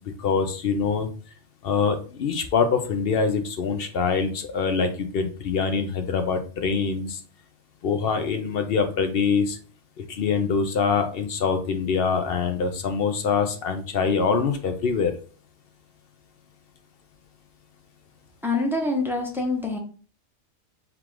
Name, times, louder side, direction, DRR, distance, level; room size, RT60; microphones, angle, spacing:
voice 1, 0.2-1.1 1.6-7.2 7.8-9.6 10.1-15.1, left 5 dB, 60° left, 6 dB, 0.8 m, -24 dB
voice 2, 18.4-19.8, left 2 dB, ahead, 1 dB, 0.6 m, -25 dB
3.7 x 2.4 x 4.6 m, 0.40 s
omnidirectional pair, 1.2 m